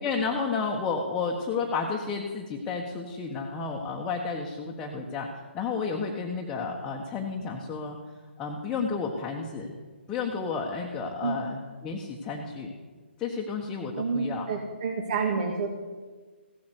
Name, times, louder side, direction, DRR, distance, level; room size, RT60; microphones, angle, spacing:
voice 1, 0.0-5.3 5.5-8.0 8.4-9.7 10.1-12.7 13.2-14.5, left 5 dB, 15° left, -1 dB, 1.3 m, -31 dB
voice 2, 14.0-15.7, right 5 dB, 45° right, 1 dB, 2.0 m, -29 dB
16.0 x 8.5 x 8.3 m, 1.4 s
figure-of-eight pair, 140°, 6 cm